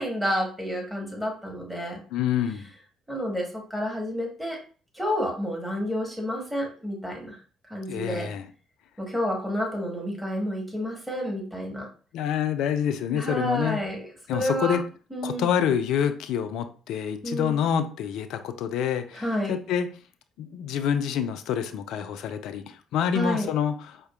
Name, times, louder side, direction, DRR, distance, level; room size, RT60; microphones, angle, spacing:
voice 1, 0.0-2.0 3.1-4.6 4.9-7.4 7.7-8.3 9.0-11.9 13.1-14.8 15.1-15.5 17.2-17.6 19.1-19.6 23.1-23.5, equal, 5° right, 1.3 m, -30 dB
voice 2, 2.1-2.7 7.9-8.5 12.1-13.8 14.3-14.8 15.2-19.9 20.4-24.0, left 8 dB, 60° left, 0.3 m, -27 dB
4.4 x 2.5 x 2.4 m
figure-of-eight pair, 50°, 0 cm